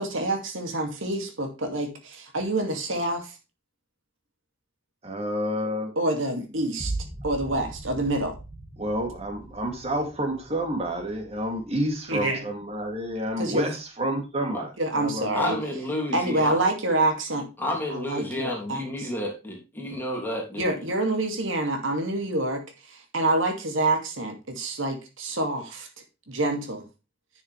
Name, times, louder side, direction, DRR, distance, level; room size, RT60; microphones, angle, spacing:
voice 1, 0.0-3.4 6.0-6.9 7.2-8.4 12.1-12.4 13.4-13.7 14.8-15.6 16.1-17.5 17.9-19.1 20.6-25.9 26.3-26.8, right 2 dB, 80° right, 4 dB, 2.5 m, -27 dB
voice 2, 5.0-5.9 8.8-15.4, equal, 30° right, 3 dB, 2.8 m, -29 dB
sound 1, 6.8-12.2 12.7-13.3, right 2 dB, 10° right, 2.3 m, -39 dB
voice 3, 15.3-16.6 17.6-20.9, left 1 dB, 10° left, -1 dB, 3.1 m, -31 dB
10.5 x 6.9 x 3.4 m, 0.28 s
head